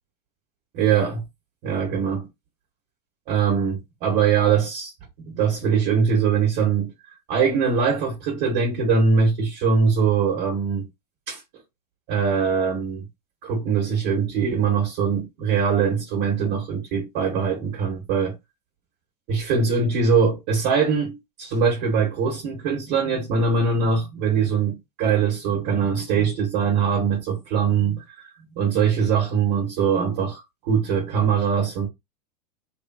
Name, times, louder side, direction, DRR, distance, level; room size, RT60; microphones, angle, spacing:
voice 1, 0.7-1.2 1.6-2.3 3.3-4.9 5.2-6.9 7.3-10.9 11.3-11.4 12.1-13.0 13.4-18.3 19.3-28.0 28.6-31.9, right 6 dB, 55° right, 1.4 m, -22 dB
2.8 x 2.6 x 2.4 m
hypercardioid pair, 90°, 21 cm